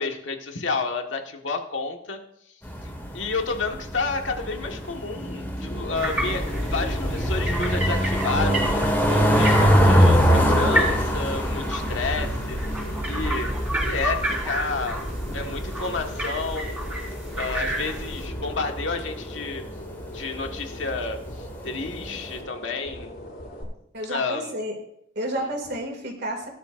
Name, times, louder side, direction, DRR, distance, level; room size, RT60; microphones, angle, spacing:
voice 1, 0.0-2.2 3.1-8.6 9.1-12.6 13.1-13.5 13.8-15.0 15.3-16.8 17.4-19.6 20.1-23.1 24.1-24.5, left 4 dB, 75° left, 3 dB, 1.6 m, -30 dB
sound 1, 2.6-22.4, equal, 10° left, 2.3 m, -25 dB
sound 2, 4.0-23.6, left 1 dB, 60° left, 5.3 m, -40 dB
sound 3, 5.9-18.3, right 1 dB, 10° right, 4.6 m, -29 dB
voice 2, 23.9-24.8 25.2-26.5, right 1 dB, 60° right, 2 dB, 2.3 m, -30 dB
18.0 x 11.5 x 2.6 m, 0.77 s
head